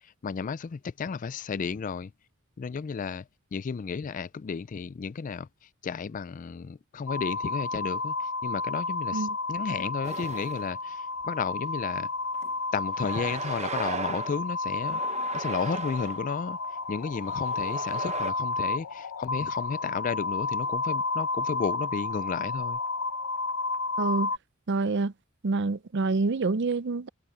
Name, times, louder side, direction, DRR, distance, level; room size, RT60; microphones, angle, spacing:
voice 1, 0.2-2.1 2.6-3.2 3.5-5.5 5.8-8.1 8.4-12.1 12.7-15.0 15.3-16.6 16.9-22.8, left 5 dB, 35° left, 0.3 m, -33 dB
sound 1, 7.1-24.4, left 3 dB, 75° left, 0.7 m, -32 dB
sound 2, 10.0-10.7 11.2-11.3 12.3-12.5 12.9-14.4 14.8-16.2 17.1-18.3, right 4 dB, 30° right, 0.9 m, -37 dB
voice 2, 24.0-24.3 24.7-25.1 25.4-27.1, right 3 dB, 55° right, 0.5 m, -27 dB
head